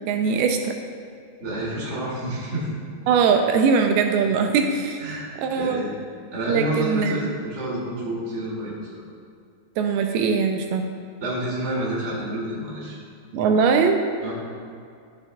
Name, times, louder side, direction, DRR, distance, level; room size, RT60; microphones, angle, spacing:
voice 1, 0.1-0.7 3.1-5.0 5.4-5.8 6.5-7.2 9.8-10.9 13.3-14.0, right 5 dB, 85° right, 4 dB, 2.5 m, -21 dB
voice 2, 1.4-2.7 5.0-5.9 6.3-9.0 11.2-13.0 14.2-14.4, right 1 dB, 25° right, -6 dB, 1.8 m, -29 dB
12.0 x 9.7 x 2.3 m, 2.3 s
omnidirectional pair, 4.5 m